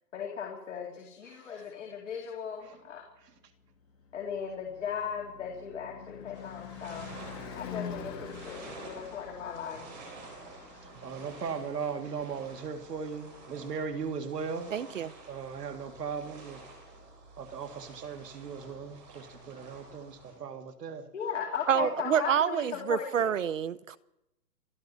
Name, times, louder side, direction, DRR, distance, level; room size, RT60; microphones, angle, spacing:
voice 1, 0.1-3.0 4.1-7.1 7.6-9.9 21.1-23.4, left 7 dB, 45° left, 2.5 m, -37 dB
Car passing by / Truck / Engine, 3.6-13.9, left 7 dB, 15° left, 1.5 m, -46 dB
sound 1, 6.3-20.3, right 3 dB, 25° right, 3.8 m, -50 dB
voice 2, 10.8-14.7 15.3-16.6 17.4-21.1 21.8-21.9, right 6 dB, 70° right, 2.2 m, -38 dB
voice 3, 14.7-15.1 21.7-24.0, right 8 dB, 50° right, 0.7 m, -28 dB
26.5 x 12.0 x 4.2 m
hypercardioid pair, 180°, 49 cm